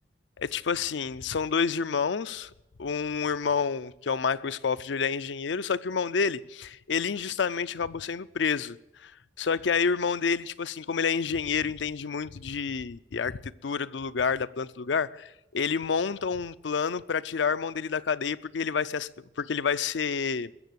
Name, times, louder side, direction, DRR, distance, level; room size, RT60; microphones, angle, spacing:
voice 1, 0.4-2.5 2.8-8.8 9.0-9.1 9.4-19.1 19.4-20.5, left 6 dB, 70° left, 0.5 m, -29 dB
21.5 x 7.4 x 8.1 m
head